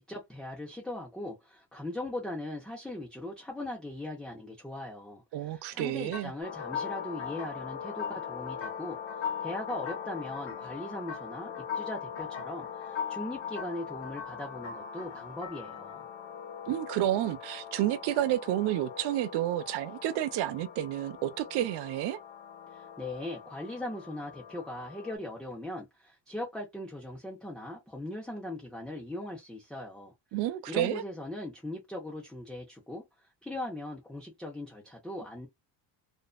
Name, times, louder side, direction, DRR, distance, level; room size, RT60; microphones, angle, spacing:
voice 1, 0.0-16.0 22.7-30.1 30.7-35.5, left 1 dB, ahead, 0.3 m, -40 dB
voice 2, 5.3-6.3 16.7-22.2 30.3-31.0, right 13 dB, 65° right, 0.5 m, -30 dB
sound 1, 6.1-16.0, left 7 dB, 35° left, 0.8 m, -40 dB
sound 2, 6.4-25.2, left 8 dB, 85° left, 0.8 m, -43 dB
2.5 x 2.1 x 2.3 m
cardioid pair, 165°, 43 cm